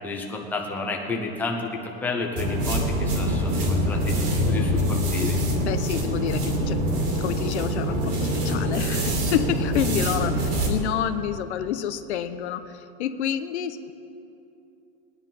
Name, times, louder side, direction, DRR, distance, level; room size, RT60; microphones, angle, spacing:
voice 1, 0.0-4.1 4.4-5.3, left 3 dB, 5° left, 0 dB, 0.9 m, -31 dB
sound 1, 2.4-10.7, equal, 40° right, 2.5 m, -24 dB
voice 2, 5.6-6.8 7.2-12.7 13.0-13.9, left 9 dB, 75° left, 10 dB, 0.9 m, -28 dB
18.5 x 10.0 x 5.5 m, 2.8 s
supercardioid pair, 170°, 34 cm